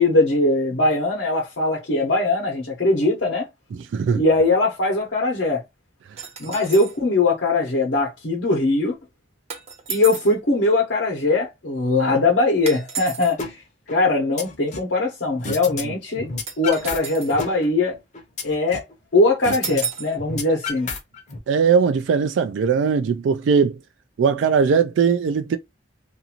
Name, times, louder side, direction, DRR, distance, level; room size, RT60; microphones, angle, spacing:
voice 1, 0.0-3.5 4.1-5.6 6.4-8.9 9.9-13.5 13.9-16.3 16.6-18.0 18.4-18.8 19.1-20.9, left 2 dB, 80° left, 0.9 m, -21 dB
voice 2, 3.7-4.2 15.8-15.9 21.5-23.8 24.2-25.6, right 6 dB, 80° right, 0.3 m, -19 dB
sound 1, 6.2-7.0 9.5-10.4 12.7-13.3 16.5-17.4 19.6-20.2, right 6 dB, 35° right, 0.6 m, -33 dB
sound 2, 13.4-13.5 13.9-14.9 15.4-15.8 16.1-17.0 17.3-18.9 19.4-19.8 20.1-21.4, left 4 dB, 40° left, 0.7 m, -31 dB
2.6 x 2.4 x 2.8 m
head